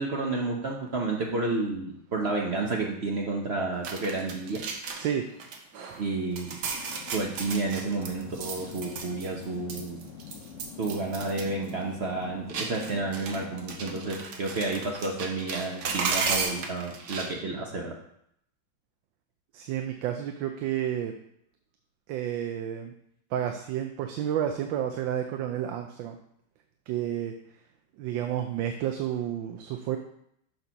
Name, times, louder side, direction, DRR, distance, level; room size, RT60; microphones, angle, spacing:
voice 1, 0.0-4.6 6.0-6.6 7.1-10.1 10.8-17.9, right 3 dB, 50° right, 0 dB, 0.8 m, -31 dB
sound 1, 3.8-5.1 5.4-6.1 6.4-9.4 9.7-11.4 11.7-11.8 12.5-17.3, right 4 dB, 65° right, 1.4 m, -34 dB
sound 2, 6.7-14.2, left 8 dB, 75° left, 0.7 m, -45 dB
voice 2, 19.5-21.1 22.1-22.9 23.3-26.2 26.9-27.3 28.0-30.0, right 10 dB, 85° right, 5 dB, 1.3 m, -30 dB
6.6 x 4.4 x 5.6 m, 0.73 s
omnidirectional pair, 2.0 m